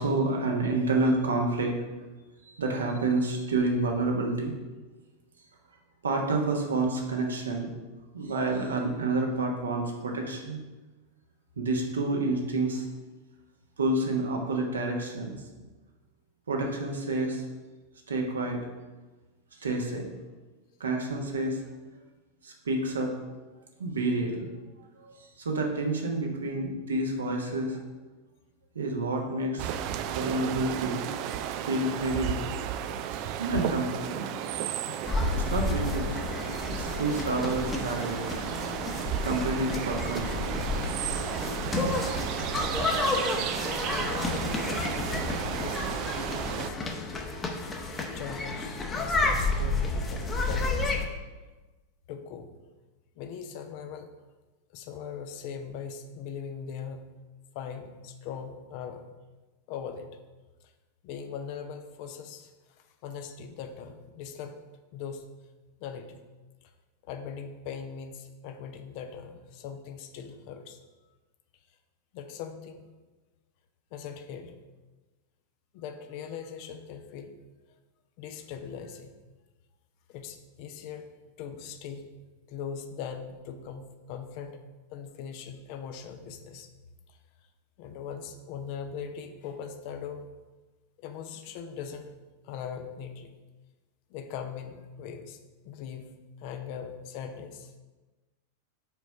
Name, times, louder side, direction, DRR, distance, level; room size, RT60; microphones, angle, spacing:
voice 1, 0.0-1.7 2.4-4.5 6.0-7.7 8.1-10.6 11.6-12.8 13.8-15.4 16.5-17.4 18.1-18.6 19.6-20.1 20.8-21.6 22.4-23.1 23.8-24.5 25.0-27.8 28.7-29.7 30.0-31.1 31.6-32.4 33.1-34.4 35.3-36.2 36.7-38.3 39.2-40.6, right 2 dB, 70° right, 1 dB, 1.1 m, -29 dB
sound 1, 29.6-46.7, right 10 dB, 40° right, 0.4 m, -34 dB
sound 2, 35.0-51.1, left 3 dB, 20° left, 0.9 m, -31 dB
voice 2, 43.9-46.0 46.4-46.8 47.1-47.3 48.0-51.1 52.1-52.5 53.2-54.1 54.7-57.1 57.5-59.1 59.7-60.1 61.0-64.6 64.9-65.3 65.8-66.2 66.6-66.7 67.1-70.8 72.1-72.8 73.9-74.6 75.7-77.3 78.2-79.1 80.1-81.1 81.4-82.1 82.5-84.6 84.9-86.7 87.1-87.2 87.8-90.2 91.0-92.1 92.4-93.3 94.1-95.4 95.6-97.7, left 7 dB, 45° left, 7 dB, 0.7 m, -40 dB
5.1 x 4.4 x 5.7 m, 1.2 s
figure-of-eight pair, 90°, 0 cm